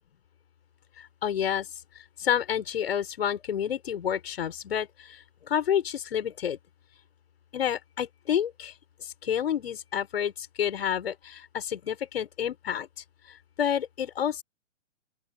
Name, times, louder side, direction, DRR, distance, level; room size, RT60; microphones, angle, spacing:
voice 1, 1.0-1.7 2.2-6.6 7.5-8.7 9.0-14.4, left 9 dB, 55° left, 5.6 m, -29 dB
open air
figure-of-eight pair, 120°, 37 cm